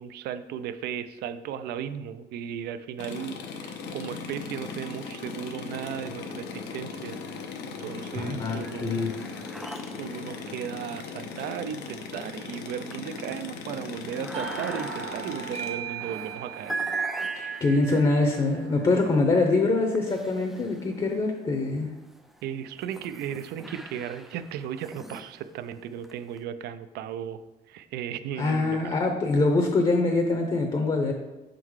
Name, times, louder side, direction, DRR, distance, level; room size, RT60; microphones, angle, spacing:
voice 1, 0.0-7.2 7.8-9.3 10.0-16.8 22.4-27.4 27.7-29.0, right 9 dB, 75° right, 13 dB, 0.4 m, -36 dB
sound 1, 3.0-15.7, left 5 dB, 85° left, 0.7 m, -38 dB
sound 2, 7.1-7.8 8.1-21.3 21.9-26.4, right 3 dB, ahead, 0.3 m, -40 dB
voice 2, 8.1-9.1 17.4-21.9 28.4-31.1, left 3 dB, 30° left, 4 dB, 0.7 m, -24 dB
Doorbell, 14.3-19.6, right 8 dB, 35° right, 0.7 m, -40 dB
5.4 x 3.9 x 4.7 m, 1.0 s
cardioid pair, 110°, 17 cm